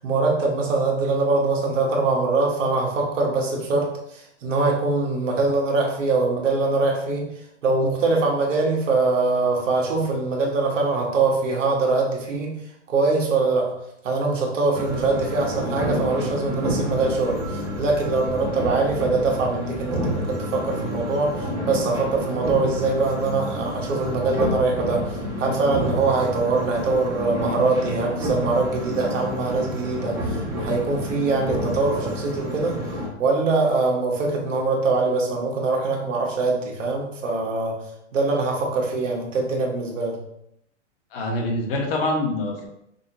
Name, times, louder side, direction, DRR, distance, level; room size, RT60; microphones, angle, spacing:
voice 1, 0.0-7.3 7.6-12.6 12.9-13.7 14.0-32.8 33.2-37.8 38.1-40.2, right 3 dB, 80° right, 0 dB, 1.4 m, -23 dB
sound 1, 14.7-33.1, equal, 10° right, 0.7 m, -29 dB
voice 2, 41.1-42.6, left 1 dB, 50° left, 1 dB, 1.2 m, -25 dB
5.4 x 2.7 x 3.0 m, 0.77 s
hypercardioid pair, 150°, 37 cm